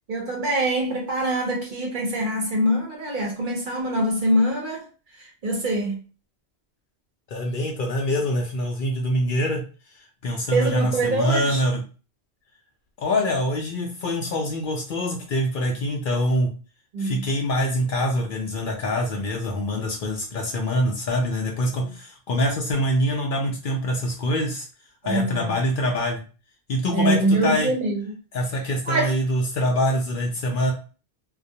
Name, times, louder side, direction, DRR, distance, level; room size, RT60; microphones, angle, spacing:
voice 1, 0.1-4.9 5.2-6.0 10.5-11.6 16.9-17.3 21.8-21.9 25.0-25.5 26.9-28.1 28.9-29.1, right 1 dB, 55° right, 0.7 m, -24 dB
voice 2, 7.3-9.6 10.2-11.8 13.0-16.5 17.0-24.7 25.0-26.2 26.7-27.7 28.3-30.7, left 1 dB, 60° left, 0.6 m, -24 dB
2.3 x 2.1 x 2.7 m
omnidirectional pair, 1.1 m